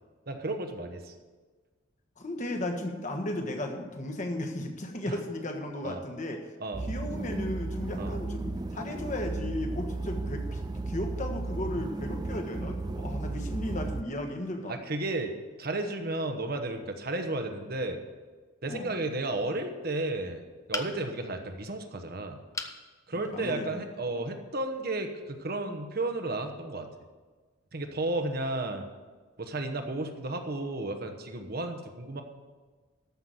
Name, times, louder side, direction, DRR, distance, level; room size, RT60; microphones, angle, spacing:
voice 1, 0.3-1.1 5.1-5.2 5.8-6.0 6.6-6.8 8.0-8.1 14.7-15.3 15.6-18.0 18.6-20.4 20.7-22.4 23.1-26.9 27.7-28.8 29.4-32.2, right 2 dB, 50° right, 6 dB, 1.1 m, -33 dB
voice 2, 2.2-6.5 6.8-14.8 18.6-18.9 23.1-23.8, left 1 dB, 40° left, 4 dB, 1.4 m, -35 dB
sound 1, 6.7-14.0, right 2 dB, 20° right, 0.4 m, -34 dB
sound 2, 20.7-21.3 22.5-22.8 23.4-23.5 23.8-23.9, left 3 dB, 15° left, 0.7 m, -35 dB
14.0 x 5.9 x 7.7 m, 1.4 s
head